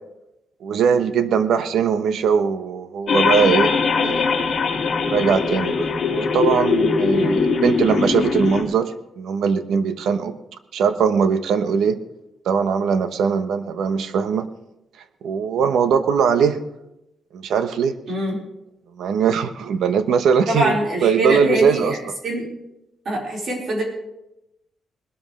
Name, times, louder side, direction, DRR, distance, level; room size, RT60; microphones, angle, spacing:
voice 1, 0.6-4.4 5.1-10.4 10.7-12.0 12.4-14.5 15.2-16.6 17.3-18.0 19.0-20.8 21.0-22.0, right 6 dB, 80° right, 10 dB, 1.0 m, -20 dB
sound 1, 3.1-8.6, left 5 dB, 45° left, 2.4 m, -21 dB
voice 2, 18.1-18.4 20.5-22.0 22.2-22.5 23.0-23.8, right 1 dB, 45° right, -2 dB, 4.5 m, -23 dB
20.5 x 12.5 x 3.2 m, 0.88 s
wide cardioid pair, 165°, 0 cm